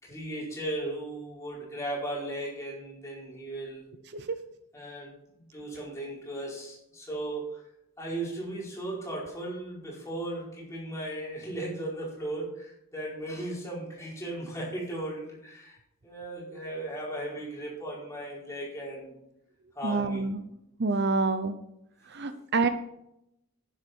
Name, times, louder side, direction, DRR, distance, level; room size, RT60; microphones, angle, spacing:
voice 1, 0.0-3.9 4.7-5.1 5.5-7.6 8.0-15.8 16.0-19.2 19.7-20.3, right 1 dB, 15° left, -5 dB, 4.7 m, -36 dB
voice 2, 19.8-20.4 20.8-21.6 22.1-22.7, right 3 dB, 50° right, 10 dB, 0.7 m, -27 dB
11.0 x 10.0 x 4.5 m, 0.80 s
head